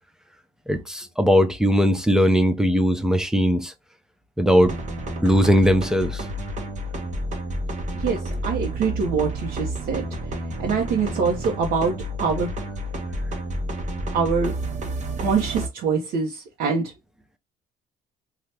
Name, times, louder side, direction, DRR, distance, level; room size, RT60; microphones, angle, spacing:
voice 1, 0.7-3.7 4.4-4.7 5.2-6.3, equal, 5° right, 0.5 m, -19 dB
sound 1, 4.6-15.7, right 1 dB, 45° right, 0.8 m, -30 dB
voice 2, 7.9-10.1 10.6-12.5 14.1-14.6 15.2-16.9, right 5 dB, 75° right, 0.9 m, -24 dB
2.9 x 2.4 x 3.2 m
cardioid pair, 110°, 17 cm